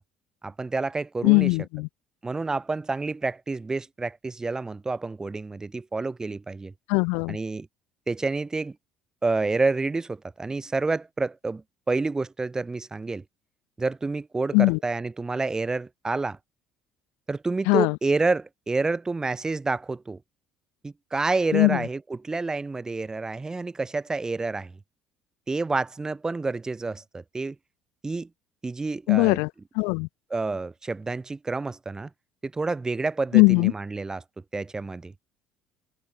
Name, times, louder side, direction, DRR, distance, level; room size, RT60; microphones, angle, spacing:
voice 1, 0.4-1.6 2.2-6.7 7.3-7.7 8.1-8.8 9.2-13.2 13.8-16.4 17.3-20.2 20.8-24.7 25.5-27.5 28.0-28.3 28.6-29.4 30.3-32.1 32.4-34.2 34.5-35.1, right 3 dB, 20° right, 1.4 m, -28 dB
voice 2, 1.2-1.9 6.9-7.4 14.5-14.8 17.7-17.9 21.5-21.8 29.1-29.5 29.8-30.1 33.3-33.7, left 32 dB, 70° left, 1.2 m, -20 dB
hypercardioid pair, 60°, 3 cm